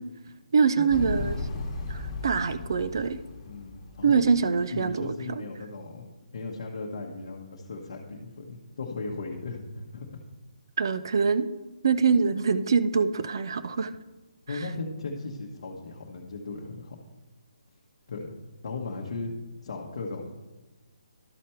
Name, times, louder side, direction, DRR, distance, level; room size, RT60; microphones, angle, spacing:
voice 1, 0.5-1.4 1.9-3.2 4.0-5.4 10.8-11.5 11.8-13.9, right 5 dB, 35° right, 13 dB, 0.4 m, -24 dB
Motorcycle, 0.9-4.8, left 3 dB, 15° left, 0.9 m, -36 dB
voice 2, 3.4-4.2 4.7-10.1 14.5-17.0 18.1-18.3 18.6-19.4 19.6-20.3, left 3 dB, 40° left, -2 dB, 1.1 m, -37 dB
12.5 x 5.0 x 4.4 m, 1.2 s
hypercardioid pair, 180°, 4 cm